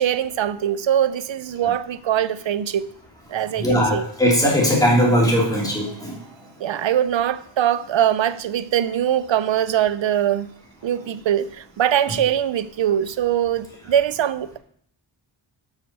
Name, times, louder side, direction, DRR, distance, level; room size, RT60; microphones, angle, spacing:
voice 1, 0.0-2.9 3.3-4.0 6.6-10.5 10.8-14.6, right 10 dB, 70° right, 0.6 m, -22 dB
voice 2, 3.6-6.1, equal, 10° left, 3.0 m, -19 dB
6.9 x 6.4 x 6.6 m
wide cardioid pair, 95°, 48 cm